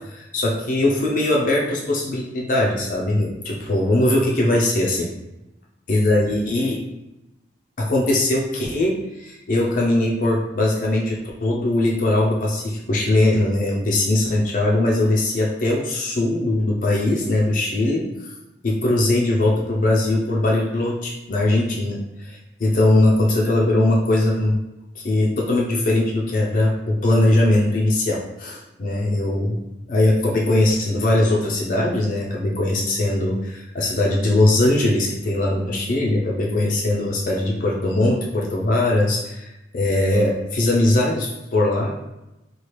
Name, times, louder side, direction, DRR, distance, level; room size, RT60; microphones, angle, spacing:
voice 1, 0.1-5.1 5.9-6.8 7.8-18.3 18.6-24.6 25.0-29.6 29.9-42.0, left 1 dB, 45° left, -3 dB, 0.4 m, -20 dB
2.9 x 2.3 x 3.1 m, 0.96 s
head